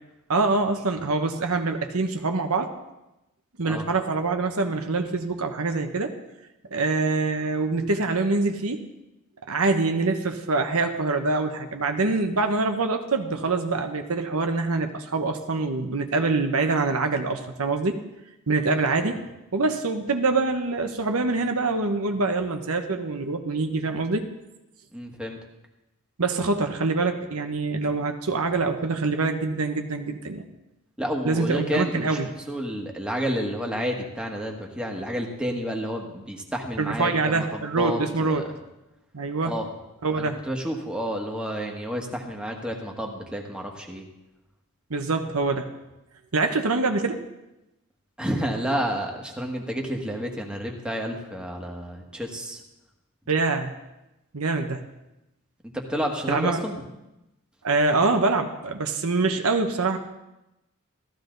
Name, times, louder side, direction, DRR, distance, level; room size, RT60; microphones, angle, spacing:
voice 1, 0.3-2.7 3.6-6.1 6.7-8.8 9.5-18.0 18.5-19.2 19.5-24.2 26.2-30.4 31.2-32.3 36.8-38.4 39.1-39.6 40.0-40.4 44.9-45.7 46.3-47.2 53.3-53.7 54.3-54.9 56.3-56.6 57.6-60.0, right 3 dB, 75° right, 5 dB, 1.1 m, -25 dB
voice 2, 24.9-25.4 31.0-32.2 32.5-38.5 39.4-39.6 40.2-44.0 48.2-52.6 55.7-56.8, equal, 5° right, 0 dB, 1.7 m, -30 dB
15.0 x 14.0 x 4.0 m, 0.95 s
head